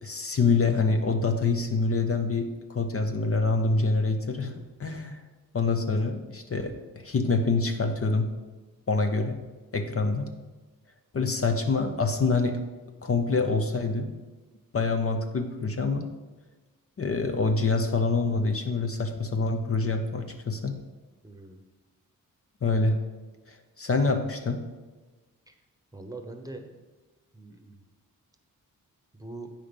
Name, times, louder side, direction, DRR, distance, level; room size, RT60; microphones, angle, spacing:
voice 1, 0.0-4.5 4.8-5.2 5.5-8.3 8.9-9.4 9.7-10.3 11.1-12.6 13.0-14.1 14.7-16.1 17.0-20.8 22.6-23.0 23.5-24.6, left 3 dB, 40° left, 6 dB, 0.8 m, -26 dB
voice 2, 21.2-21.6 25.5-25.6 25.9-26.8 27.3-27.8 29.1-29.5, right 2 dB, 10° right, 5 dB, 1.0 m, -42 dB
8.8 x 5.7 x 5.3 m, 1.2 s
cardioid pair, 80°, 34 cm